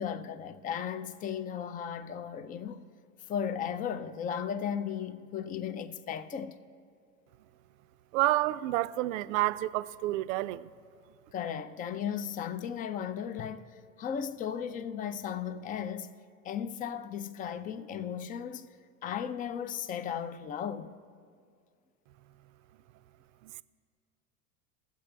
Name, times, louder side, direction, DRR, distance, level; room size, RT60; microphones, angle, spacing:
voice 1, 0.0-2.9 3.3-6.6 11.3-16.1 16.4-18.7 19.0-21.0, left 8 dB, 20° left, 0.4 m, -36 dB
voice 2, 8.1-10.7 23.4-23.6, right 17 dB, 70° right, 0.5 m, -29 dB
20.5 x 8.0 x 3.4 m
hypercardioid pair, 100°, 42 cm